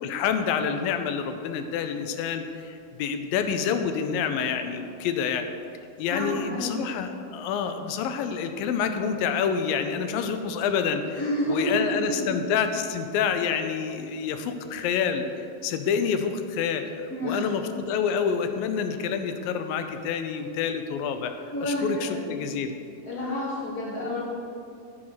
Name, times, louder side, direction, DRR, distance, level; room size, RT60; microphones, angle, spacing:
voice 1, 0.0-5.5 6.0-11.2 11.5-15.2 15.6-21.3 21.6-22.8, left 7 dB, 80° left, 7 dB, 2.4 m, -28 dB
voice 2, 6.1-6.7 11.1-12.3 17.1-17.4 21.5-22.5 23.0-24.2, equal, 25° left, -7 dB, 3.3 m, -29 dB
14.5 x 6.4 x 6.1 m, 2.5 s
omnidirectional pair, 4.2 m